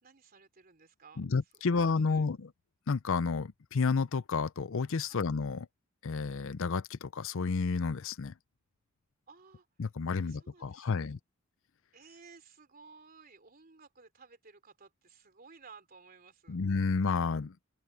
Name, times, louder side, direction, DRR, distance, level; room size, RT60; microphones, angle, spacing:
voice 1, 0.0-1.2 1.6-2.2 5.1-5.2 9.3-9.7 10.2-11.1 11.9-16.6, right 5 dB, 45° right, 3.4 m, -56 dB
voice 2, 1.2-2.5 2.9-5.7 6.0-8.3 9.8-11.2 16.5-17.5, left 4 dB, 65° left, 0.6 m, -31 dB
open air
head